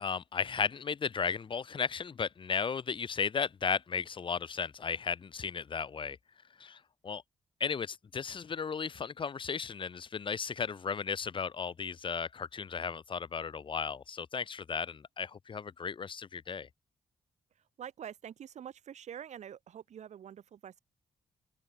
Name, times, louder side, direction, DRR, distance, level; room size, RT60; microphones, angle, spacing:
voice 1, 0.0-6.2 6.6-7.2 7.6-16.7, left 6 dB, 40° left, 0.7 m, -35 dB
voice 2, 17.8-20.8, right 9 dB, 65° right, 1.6 m, -46 dB
open air
supercardioid pair, 45°, 13 cm